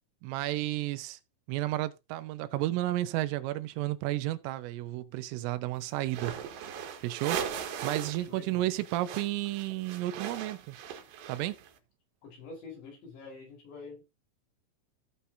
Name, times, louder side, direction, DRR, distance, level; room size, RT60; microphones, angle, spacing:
voice 1, 0.2-1.2 1.5-6.4 7.0-10.8 11.3-11.6, right 16 dB, 90° right, 3.4 m, -32 dB
sound 1, 6.1-8.3 8.5-11.7, right 8 dB, 70° right, 3.2 m, -38 dB
voice 2, 8.1-8.7 12.2-14.0, left 4 dB, 65° left, 6.5 m, -47 dB
16.0 x 6.8 x 2.7 m
omnidirectional pair, 5.6 m